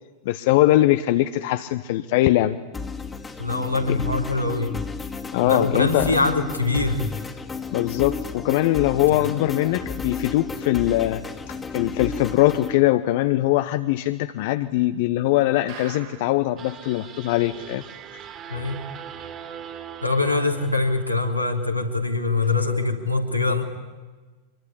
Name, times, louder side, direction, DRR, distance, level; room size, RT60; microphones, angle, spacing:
voice 1, 0.2-2.6 3.9-4.0 5.3-6.1 7.7-11.2 11.5-17.8, left 15 dB, 50° left, 11 dB, 0.9 m, -21 dB
sound 1, 2.7-12.8, left 4 dB, 15° left, 2.1 m, -33 dB
voice 2, 3.4-4.8 5.4-7.1 9.0-9.2 18.5-18.9 20.0-23.6, left 3 dB, 90° left, 1 dB, 3.3 m, -23 dB
sound 2, 15.7-16.5 16.9-17.0 17.2-17.3 17.8-17.9, right 10 dB, 50° right, 3.4 m, -41 dB
sound 3, 16.6-21.8, right 8 dB, 30° right, 3.2 m, -41 dB
25.0 x 23.5 x 10.0 m, 1.3 s
figure-of-eight pair, 90°, 0 cm